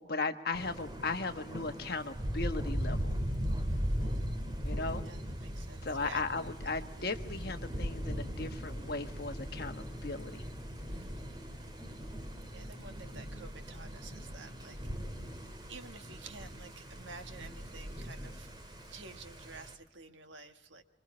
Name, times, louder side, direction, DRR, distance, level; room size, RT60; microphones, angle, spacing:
voice 1, 0.0-3.2 4.6-5.0 5.8-10.4, left 3 dB, 55° left, 7 dB, 1.2 m, -37 dB
Thunder, 0.5-19.7, equal, 25° right, 2.1 m, -39 dB
voice 2, 3.6-4.3 5.0-6.5 10.9-11.5 12.5-14.8 15.7-18.5 18.9-20.8, right 4 dB, 85° right, 7 dB, 1.5 m, -51 dB
25.5 x 24.5 x 4.3 m, 0.99 s
head